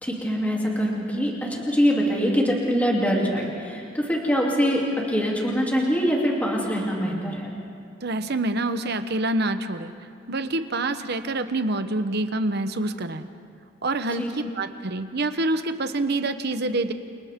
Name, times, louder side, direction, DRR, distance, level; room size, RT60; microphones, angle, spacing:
voice 1, 0.0-7.5 14.2-14.3, equal, 10° left, -3 dB, 3.1 m, -24 dB
voice 2, 8.0-9.9 10.3-13.3 13.8-16.9, right 2 dB, 60° right, 9 dB, 1.0 m, -26 dB
29.5 x 29.0 x 3.7 m, 2.4 s
head